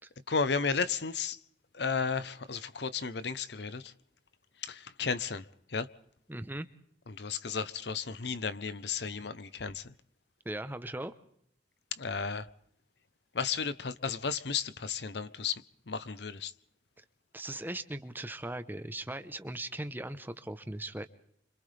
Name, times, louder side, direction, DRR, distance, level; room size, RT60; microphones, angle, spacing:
voice 1, 0.3-1.4 1.7-3.9 4.6-5.4 5.7-5.9 7.1-9.9 12.0-12.5 13.3-15.6 15.9-16.5, left 5 dB, 65° left, 0.8 m, -33 dB
voice 2, 6.3-6.7 10.4-11.1 17.3-21.1, right 1 dB, 10° right, 0.9 m, -38 dB
30.0 x 26.0 x 3.4 m
head